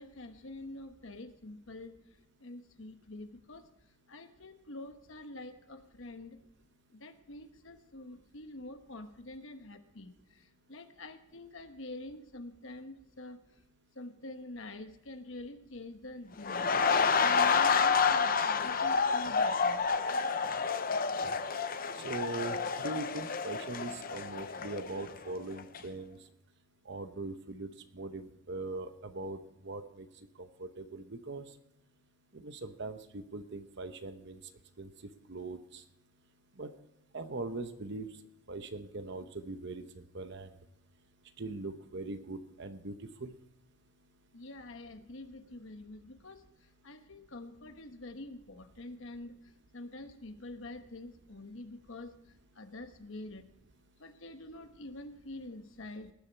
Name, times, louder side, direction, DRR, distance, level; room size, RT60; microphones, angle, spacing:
voice 1, 0.0-2.0 2.4-3.6 4.1-6.4 7.0-10.1 10.7-13.4 14.0-16.7 17.2-19.8 44.3-46.4 46.8-49.3 49.7-52.1 52.6-53.5 54.0-56.1, left 2 dB, 60° left, 7 dB, 1.1 m, -46 dB
sound 1, 16.4-25.3 25.6-25.8, left 5 dB, 40° left, 0.6 m, -29 dB
voice 2, 21.9-26.2 26.9-30.1 30.4-31.5 32.3-34.4 34.8-34.9 35.3-35.8 36.6-36.7 37.1-38.1 38.5-40.5 41.4-43.3, right 3 dB, 50° right, 9 dB, 0.8 m, -41 dB
19.0 x 7.1 x 4.5 m, 0.86 s
head